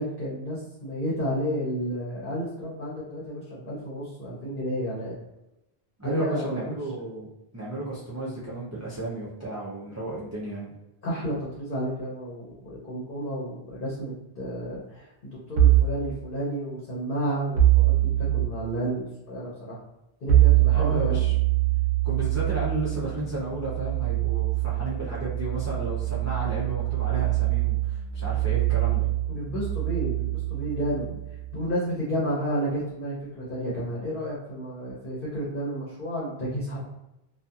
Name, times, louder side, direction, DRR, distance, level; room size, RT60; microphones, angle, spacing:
voice 1, 0.0-5.2 6.0-6.8 11.0-19.8 20.2-21.2 29.3-31.1 31.5-36.9, right 1 dB, 60° left, -6 dB, 0.9 m, -31 dB
voice 2, 6.0-7.3 7.5-10.7 20.7-21.3 22.0-29.1, right 2 dB, 25° right, -8 dB, 0.4 m, -33 dB
sound 1, 15.6-16.0 17.6-18.5 20.3-31.6, right 14 dB, 70° right, 0.8 m, -24 dB
2.7 x 2.4 x 2.4 m, 0.93 s
omnidirectional pair, 1.0 m